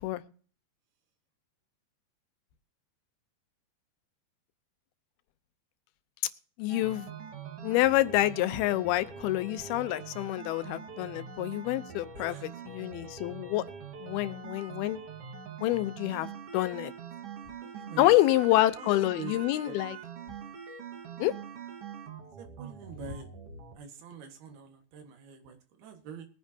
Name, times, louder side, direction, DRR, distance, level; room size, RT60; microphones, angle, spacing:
voice 1, 6.6-7.1 7.6-13.7 14.0-15.0 15.6-16.9 18.0-20.0 21.2-21.4, left 16 dB, 85° left, 2.7 m, -27 dB
sound 1, 6.7-23.8, right 6 dB, 50° right, 2.1 m, -44 dB
voice 2, 17.6-18.1 18.8-18.9 19.2-19.3 19.7-19.8 22.4-23.3 23.8-26.3, right 7 dB, 80° right, 3.5 m, -45 dB
21.5 x 9.4 x 2.8 m
omnidirectional pair, 4.4 m